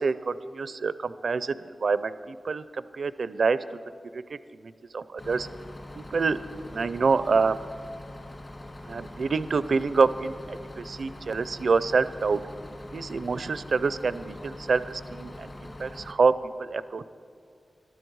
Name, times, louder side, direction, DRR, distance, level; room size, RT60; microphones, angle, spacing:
voice 1, 0.0-3.6 4.1-5.5 6.1-7.6 8.9-12.4 12.9-16.3 16.6-17.1, right 4 dB, 65° right, 15 dB, 0.5 m, -27 dB
Bus, 5.2-16.1, left 1 dB, 35° left, 1.8 m, -43 dB
21.5 x 12.5 x 4.7 m, 2.3 s
wide cardioid pair, 120°, 0 cm